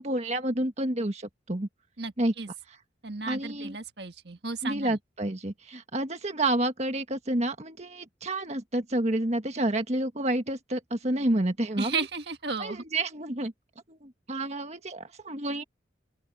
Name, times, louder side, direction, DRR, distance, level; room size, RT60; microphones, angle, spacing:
voice 1, 0.0-1.7 2.2-2.3 3.3-3.8 4.6-11.9 12.6-13.5 13.9-15.6, right 1 dB, 35° right, 1.6 m, -29 dB
voice 2, 2.0-2.5 3.0-5.0 11.8-12.8, right 4 dB, 60° right, 1.7 m, -34 dB
open air
head